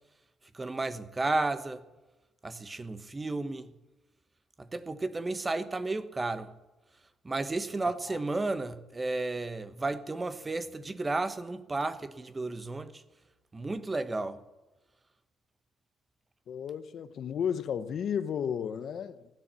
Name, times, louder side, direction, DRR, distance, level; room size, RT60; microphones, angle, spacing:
voice 1, 0.5-1.8 2.4-3.7 4.6-6.5 7.2-13.0 13.5-14.4, right 2 dB, 25° right, 1.0 m, -33 dB
voice 2, 7.8-8.2 16.5-19.3, left 8 dB, 65° left, 0.9 m, -33 dB
16.0 x 10.0 x 7.5 m
cardioid pair, 90°, 0 cm